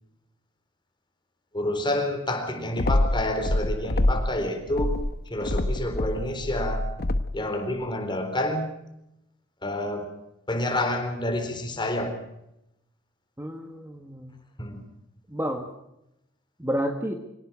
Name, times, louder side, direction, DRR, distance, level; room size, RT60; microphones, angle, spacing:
voice 1, 1.5-5.0 5.3-6.9 7.3-8.7 9.6-10.1 10.5-12.1 14.6-14.8, left 1 dB, 25° left, 5 dB, 4.1 m, -28 dB
sound 1, 2.8-4.4 4.7-7.5, left 1 dB, 50° left, 1.0 m, -26 dB
voice 2, 13.4-14.4 15.3-15.7 16.6-17.1, equal, 10° right, 5 dB, 1.5 m, -30 dB
24.5 x 18.0 x 6.2 m, 0.85 s
head